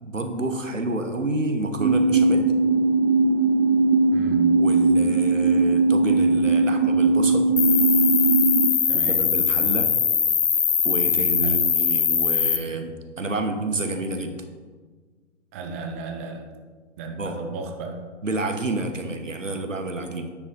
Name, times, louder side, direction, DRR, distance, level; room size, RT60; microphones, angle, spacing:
voice 1, 0.0-2.5 4.6-7.5 8.9-9.9 10.8-14.5 17.2-17.5 18.2-20.3, right 2 dB, 90° right, 6 dB, 1.2 m, -29 dB
sound 1, 1.8-8.7, right 3 dB, 65° right, 1.0 m, -19 dB
voice 2, 4.1-4.6 8.9-9.2 11.4-11.6 15.5-16.5 17.0-18.0, right 3 dB, 15° right, 3 dB, 0.4 m, -34 dB
Cricket, 7.6-12.6, left 7 dB, 65° left, 1.1 m, -21 dB
9.5 x 5.0 x 5.3 m, 1.4 s
figure-of-eight pair, 125°, 37 cm